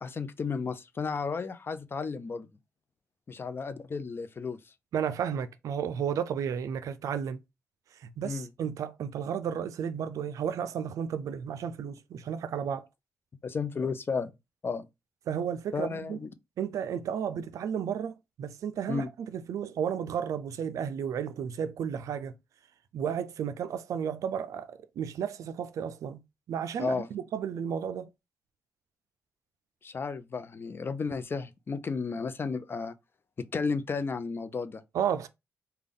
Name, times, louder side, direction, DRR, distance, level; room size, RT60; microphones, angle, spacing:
voice 1, 0.0-2.5 3.3-4.6 8.2-8.5 13.4-14.3 14.6-14.9 15.7-16.3 18.9-19.1 26.8-27.1 29.8-32.9 33.4-34.8, left 5 dB, 40° left, 0.5 m, -33 dB
voice 2, 4.9-7.4 8.0-12.9 15.3-16.2 16.6-22.3 22.9-26.2 26.5-28.1 34.9-35.3, right 8 dB, 75° right, 0.4 m, -33 dB
3.4 x 2.3 x 3.7 m
cardioid pair, 65°, 6 cm